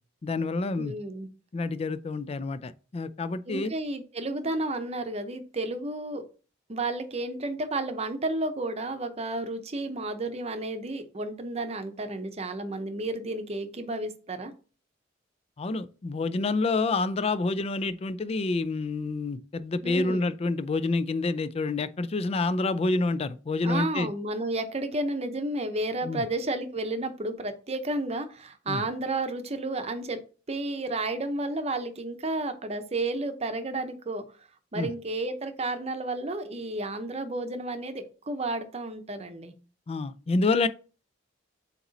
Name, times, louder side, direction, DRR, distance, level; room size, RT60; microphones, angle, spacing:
voice 1, 0.2-0.9 1.5-3.7 15.6-24.1 26.0-26.2 28.7-28.9 34.7-34.9 39.9-40.7, left 3 dB, 35° left, 0.4 m, -28 dB
voice 2, 0.8-1.3 3.5-6.2 6.7-14.5 19.8-20.2 23.6-30.2 30.5-34.2 34.7-39.5, right 2 dB, 35° right, 0.7 m, -32 dB
7.8 x 3.0 x 4.0 m
head